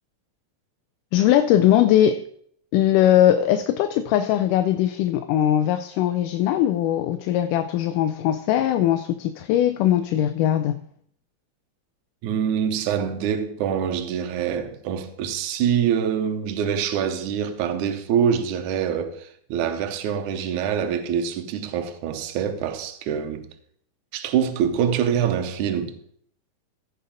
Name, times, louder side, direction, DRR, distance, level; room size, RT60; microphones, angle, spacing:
voice 1, 1.1-2.3 2.7-10.8, left 11 dB, 90° left, 2.2 m, -20 dB
voice 2, 12.2-23.5 24.1-26.0, right 8 dB, 75° right, 2.3 m, -25 dB
15.5 x 5.6 x 4.9 m
omnidirectional pair, 3.6 m